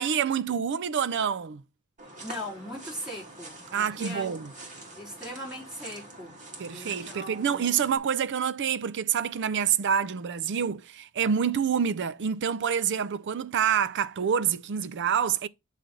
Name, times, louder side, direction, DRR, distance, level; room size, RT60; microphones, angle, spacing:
voice 1, 0.0-1.6 3.7-4.5 6.6-15.5, right 7 dB, 55° right, 0.4 m, -27 dB
sound 1, 2.0-8.0, right 2 dB, 35° right, 2.1 m, -45 dB
voice 2, 2.2-4.7 5.0-6.4 6.7-7.7, equal, ahead, 4.0 m, -40 dB
8.9 x 3.3 x 3.9 m
head